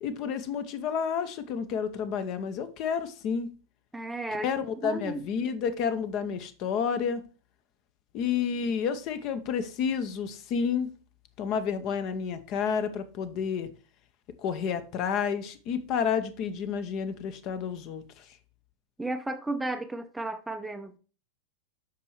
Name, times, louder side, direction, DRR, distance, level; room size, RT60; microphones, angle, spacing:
voice 1, 0.0-3.5 4.4-7.2 8.1-10.9 11.4-13.7 14.4-18.0, left 7 dB, 40° left, 0.8 m, -30 dB
voice 2, 3.9-4.5 4.8-5.2 19.0-21.0, right 2 dB, 5° right, 0.5 m, -33 dB
8.1 x 5.4 x 3.2 m
figure-of-eight pair, 90°, 0 cm